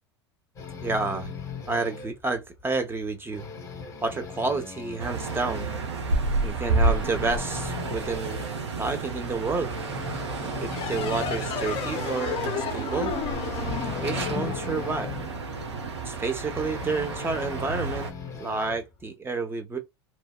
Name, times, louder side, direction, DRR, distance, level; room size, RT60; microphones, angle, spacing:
sound 1, 0.6-2.2 2.6-2.8 3.1-5.8 6.2-6.3 6.7-8.6 9.1-9.2 9.6-12.0 13.2-15.2 16.5-18.9, left 6 dB, 20° left, 1.2 m, -39 dB
voice 1, 0.8-1.3 1.7-3.4 4.0-5.7 6.4-8.4 8.8-9.7 10.6-13.1 13.8-15.1 16.0-19.8, right 3 dB, 15° right, 0.8 m, -30 dB
sound 2, 5.0-18.1, right 3 dB, 80° right, 0.8 m, -30 dB
sound 3, 10.7-15.9, left 9 dB, 40° left, 0.5 m, -33 dB
3.0 x 2.6 x 2.2 m
figure-of-eight pair, 85°, 14 cm